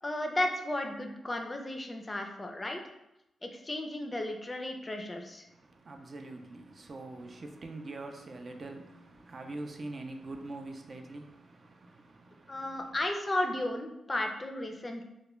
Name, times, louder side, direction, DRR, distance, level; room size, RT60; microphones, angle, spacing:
voice 1, 0.0-2.8 3.4-5.5 12.5-15.0, left 1 dB, 25° left, 0.4 m, -34 dB
voice 2, 5.5-13.0, right 2 dB, 45° right, 0.3 m, -44 dB
2.2 x 2.1 x 3.0 m
cardioid pair, 70°, 0 cm